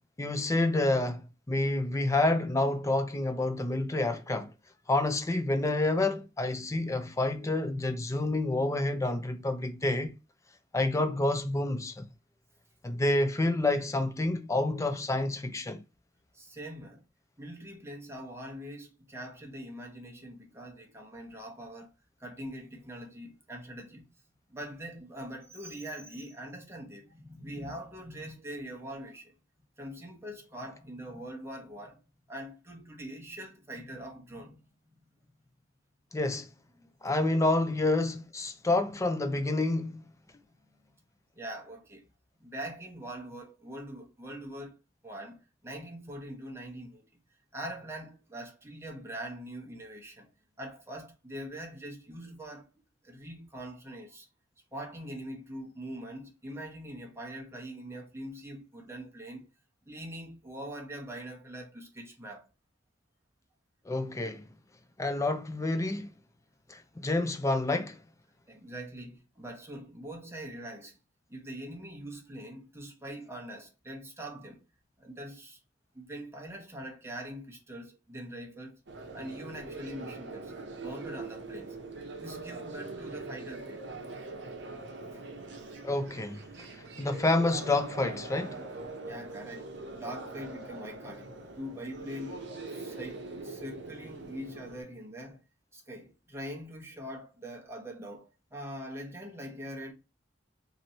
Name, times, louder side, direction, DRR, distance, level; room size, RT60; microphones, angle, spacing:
voice 1, 0.2-4.5 4.9-10.1 10.7-12.1 12.8-15.8 36.1-36.5 37.0-40.0 63.9-64.5 65.0-66.1 66.7-68.0 85.8-86.5 86.7-88.6, left 2 dB, 15° left, 0.5 m, -28 dB
voice 2, 16.3-17.0 17.4-21.9 22.2-24.1 24.5-29.4 29.8-32.0 32.3-35.3 36.8-37.1 38.1-38.2 38.7-39.0 41.3-42.1 42.4-44.8 45.0-47.1 47.5-50.3 50.6-52.7 53.0-54.3 54.7-59.5 59.9-62.5 68.5-71.0 71.3-74.6 75.0-75.6 75.9-78.8 79.1-80.5 80.8-81.8 82.2-83.9 85.1-85.2 89.0-95.4 95.7-99.9, right 1 dB, 15° right, 1.0 m, -43 dB
sound 1, 78.9-94.8, right 3 dB, 65° right, 0.8 m, -42 dB
3.0 x 2.7 x 4.1 m
head